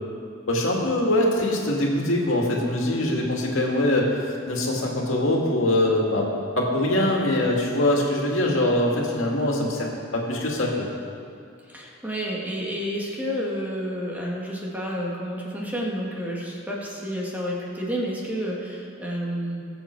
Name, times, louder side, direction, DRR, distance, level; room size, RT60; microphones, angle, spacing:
voice 1, 0.5-6.3 6.6-10.9, left 1 dB, 80° left, -1 dB, 2.1 m, -23 dB
voice 2, 11.7-19.6, equal, 10° right, -4 dB, 1.7 m, -30 dB
20.5 x 7.1 x 4.6 m, 2.4 s
head